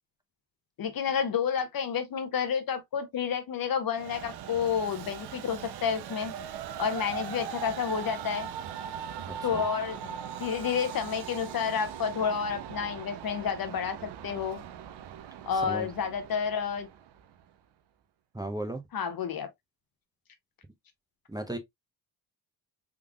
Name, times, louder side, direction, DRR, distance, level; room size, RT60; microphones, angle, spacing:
voice 1, 0.8-6.3 6.8-8.5 9.4-14.6 15.5-16.9 18.9-19.5, left 7 dB, 50° left, 1.0 m, -30 dB
Train, 3.9-17.4, right 9 dB, 65° right, 0.7 m, -40 dB
voice 2, 9.3-9.6 15.7-15.9 18.3-18.8 21.3-21.6, right 1 dB, 10° right, 0.8 m, -35 dB
3.6 x 3.4 x 2.3 m
supercardioid pair, 65°, 44 cm